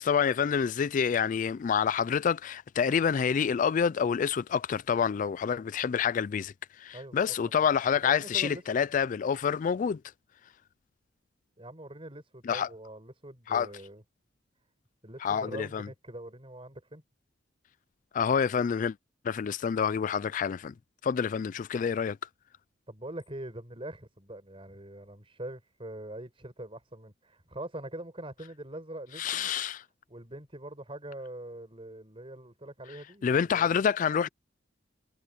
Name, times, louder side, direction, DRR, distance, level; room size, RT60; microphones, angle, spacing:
voice 1, 0.0-6.5 6.8-10.0 12.5-12.7 13.5-13.7 15.2-15.8 18.1-18.9 19.2-20.7 21.0-22.2 29.2-29.8 33.2-34.3, left 7 dB, 45° left, 0.3 m, -27 dB
voice 2, 6.9-7.7 7.9-8.9 11.6-14.0 15.0-17.0 22.9-29.5 30.1-33.7, right 1 dB, 30° right, 5.0 m, -43 dB
head